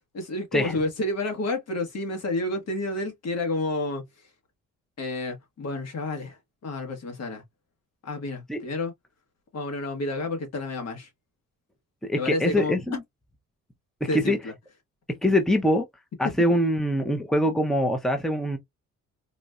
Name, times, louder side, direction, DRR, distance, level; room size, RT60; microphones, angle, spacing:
voice 1, 0.1-4.0 5.0-7.4 8.0-8.9 9.5-11.1 12.1-12.8 14.1-14.5, left 2 dB, 55° left, 1.5 m, -30 dB
voice 2, 12.1-13.0 14.1-14.4 15.2-15.8 16.2-18.6, equal, ahead, 0.8 m, -23 dB
4.1 x 2.5 x 2.2 m
cardioid pair, 90°, 30 cm